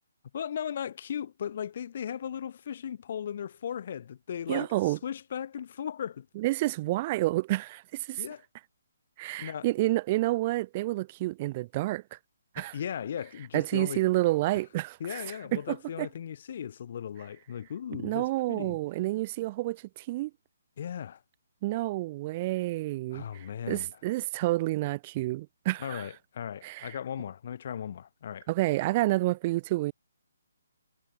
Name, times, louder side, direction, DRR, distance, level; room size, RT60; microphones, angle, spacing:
voice 1, 0.3-6.3 8.2-8.4 9.4-9.7 12.6-14.0 15.0-18.8 20.8-21.2 23.1-23.9 25.8-28.5, left 8 dB, 45° left, 2.6 m, -37 dB
voice 2, 4.5-5.0 6.4-8.2 9.2-12.2 12.5-12.7 13.5-15.2 15.5-16.1 18.0-20.3 21.6-26.1 26.6-26.9 28.5-29.9, right 18 dB, 30° right, 0.4 m, -29 dB
hypercardioid pair, 160°, 0 cm